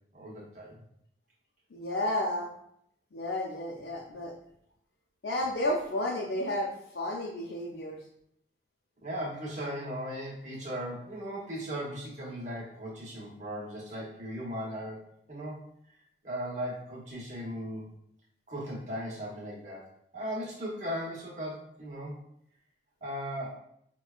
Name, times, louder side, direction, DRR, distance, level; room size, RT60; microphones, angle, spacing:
voice 1, 0.1-0.7 9.0-15.7 16.2-17.9 18.5-19.9 20.1-22.1 23.0-23.6, equal, 40° right, -4 dB, 1.1 m, -37 dB
voice 2, 1.7-2.5 3.1-4.3 5.2-8.0, left 1 dB, 80° left, -3 dB, 0.6 m, -32 dB
5.9 x 2.2 x 2.3 m, 0.71 s
head